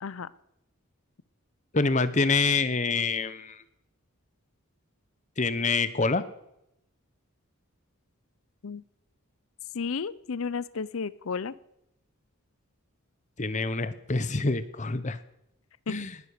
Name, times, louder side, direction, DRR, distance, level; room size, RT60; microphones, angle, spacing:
voice 1, 1.7-3.6 5.4-6.2 13.4-15.2 15.9-16.1, left 3 dB, 35° left, 14 dB, 1.0 m, -26 dB
voice 2, 9.7-11.5 15.9-16.0, left 5 dB, 70° left, 19 dB, 0.6 m, -32 dB
19.5 x 10.0 x 6.7 m, 0.83 s
head